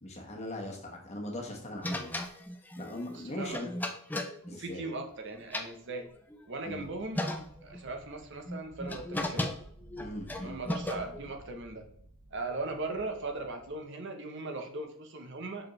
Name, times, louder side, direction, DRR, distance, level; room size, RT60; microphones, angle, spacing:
voice 1, 0.0-2.2 2.8-3.7 4.5-4.9 6.6-6.9 10.0-10.6, left 1 dB, 30° left, 0 dB, 1.2 m, -40 dB
sound 1, 1.8-5.1 5.4-6.4 6.8-6.9 7.1-7.8 8.5-11.3, left 1 dB, 10° left, 0.4 m, -36 dB
voice 2, 3.1-3.6 4.5-6.1 6.5-7.2 7.6-9.5 10.4-11.9 12.3-15.7, right 3 dB, 55° right, 5 dB, 0.9 m, -38 dB
sound 2, 5.0-13.7, right 1 dB, 90° right, 1.7 m, -55 dB
6.3 x 4.8 x 3.1 m, 0.66 s
head